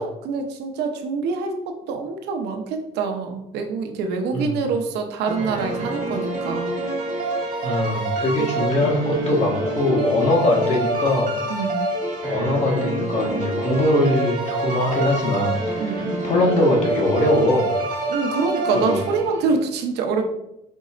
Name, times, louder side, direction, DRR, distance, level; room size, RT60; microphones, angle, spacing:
voice 1, 0.0-6.8 8.4-8.5 11.5-11.8 15.8-16.5 18.1-20.3, right 4 dB, 80° right, 5 dB, 0.7 m, -25 dB
sound 1, 5.3-19.6, right 2 dB, 55° right, 1.7 m, -27 dB
voice 2, 7.6-11.3 12.2-15.8 16.2-17.7 18.7-19.0, left 1 dB, 40° left, -2 dB, 1.4 m, -21 dB
5.3 x 4.1 x 2.5 m, 0.83 s
cardioid pair, 110°, 17 cm